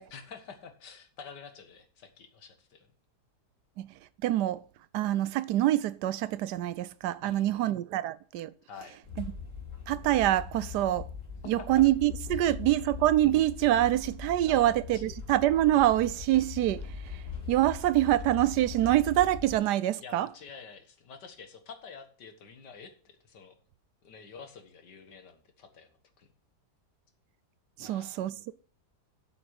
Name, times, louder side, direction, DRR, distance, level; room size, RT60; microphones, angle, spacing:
voice 1, 0.1-2.9 7.2-7.8 8.7-9.0 11.4-11.7 14.5-15.0 20.0-23.6 24.0-26.3 27.8-28.2, left 5 dB, 80° left, 2.1 m, -48 dB
voice 2, 4.2-4.6 4.9-8.5 9.2-9.3 9.9-11.1 11.5-17.2 17.5-20.3 27.8-28.5, right 14 dB, 75° right, 1.2 m, -26 dB
sound 1, 9.0-19.6, left 6 dB, 45° left, 3.5 m, -41 dB
7.9 x 6.1 x 7.8 m
omnidirectional pair, 1.8 m